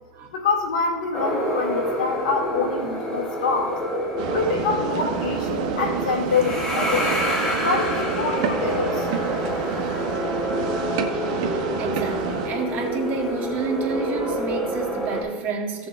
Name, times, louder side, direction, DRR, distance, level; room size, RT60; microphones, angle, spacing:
voice 1, 0.3-3.8 4.3-7.1 7.6-9.1, left 4 dB, 85° left, 2 dB, 1.9 m, -25 dB
sound 1, 1.1-15.2, equal, 15° left, 3.0 m, -28 dB
sound 2, 4.2-12.5, right 7 dB, 70° right, 1.2 m, -29 dB
voice 2, 11.8-15.9, right 4 dB, 50° right, 0 dB, 2.0 m, -29 dB
16.5 x 6.8 x 2.3 m, 1.4 s
hypercardioid pair, 90°, 4 cm